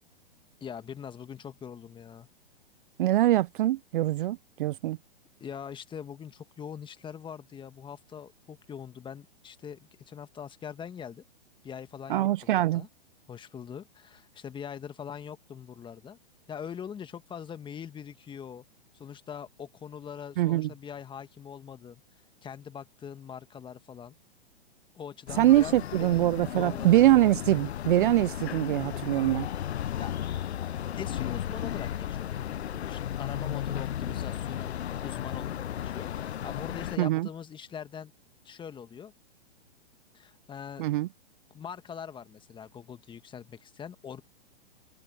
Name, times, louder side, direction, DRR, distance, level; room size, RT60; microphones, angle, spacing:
voice 1, 0.6-2.3 5.4-11.2 11.6-12.9 13.3-16.2 16.5-18.6 18.9-22.0 22.4-24.1 24.9-27.0 30.0-30.2 30.6-30.7 31.0-38.1 38.4-39.1 40.1-40.8 41.5-44.2, left 8 dB, 15° left, 1.6 m, -42 dB
voice 2, 3.0-5.0 12.1-12.9 20.4-20.7 25.4-29.5 37.0-37.3 40.8-41.1, right 14 dB, 55° right, 0.6 m, -23 dB
sound 1, 25.3-37.0, left 10 dB, 80° left, 0.6 m, -34 dB
hypercardioid pair, 125°, 32 cm